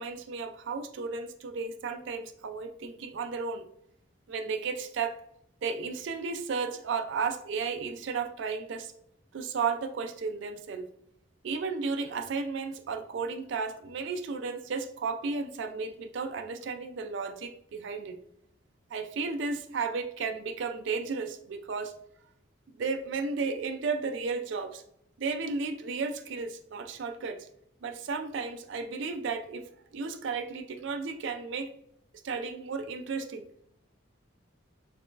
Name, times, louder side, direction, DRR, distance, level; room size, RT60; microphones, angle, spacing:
voice 1, 0.0-3.6 4.3-5.2 5.6-8.9 9.3-10.9 11.4-18.2 18.9-21.9 22.8-24.8 25.2-27.5 27.8-29.7 29.9-31.7 32.2-33.5, right 4 dB, 65° right, 6 dB, 0.4 m, -33 dB
4.6 x 3.0 x 2.4 m, 0.74 s
head